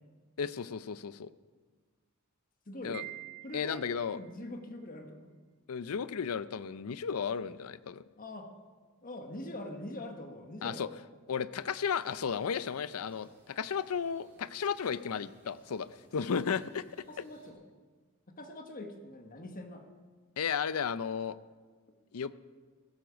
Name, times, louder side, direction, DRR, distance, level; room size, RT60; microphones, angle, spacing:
voice 1, 0.4-1.3 2.8-3.0 3.5-4.2 5.7-8.0 10.6-10.9 11.3-15.9 16.1-16.8 20.4-21.4 22.1-22.3, left 6 dB, 75° left, 16 dB, 0.5 m, -34 dB
voice 2, 2.7-3.0 3.4-3.8 4.1-5.3 8.2-8.5 9.0-11.0 17.1-17.6 18.3-19.9, left 1 dB, 40° left, 5 dB, 1.4 m, -43 dB
Wind chime, 2.9-4.3, right 20 dB, 50° right, 1.0 m, -46 dB
sound 1, 11.6-17.5, right 1 dB, 10° right, 3.5 m, -65 dB
15.5 x 13.0 x 5.1 m, 1.5 s
head